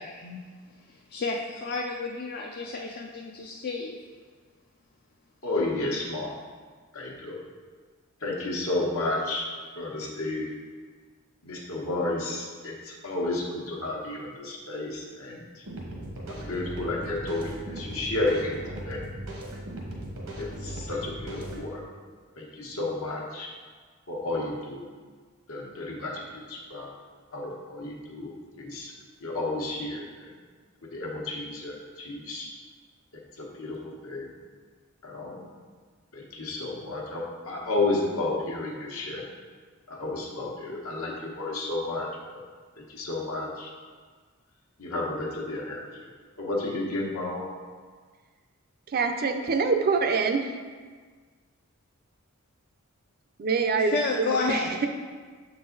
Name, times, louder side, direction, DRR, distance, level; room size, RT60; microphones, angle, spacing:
voice 1, 0.0-4.0 53.8-54.8, left 3 dB, 50° left, 0 dB, 0.4 m, -31 dB
voice 2, 5.4-6.3 6.9-7.4 8.2-9.5 9.7-10.5 11.4-15.6 16.3-19.1 20.4-21.8 22.4-23.5 24.1-24.8 25.5-26.9 27.3-28.3 28.6-28.9 29.2-30.4 30.9-32.5 33.1-34.3 35.0-35.4 36.1-39.2 39.9-42.4 42.8-43.7 44.8-46.1 46.4-47.5, left 2 dB, 75° left, -2 dB, 1.2 m, -32 dB
sound 1, 15.7-21.7, right 1 dB, 85° right, 1.2 m, -38 dB
voice 3, 48.9-50.6 53.4-54.9, right 4 dB, 45° right, 6 dB, 0.4 m, -25 dB
7.1 x 3.9 x 3.9 m, 1.5 s
head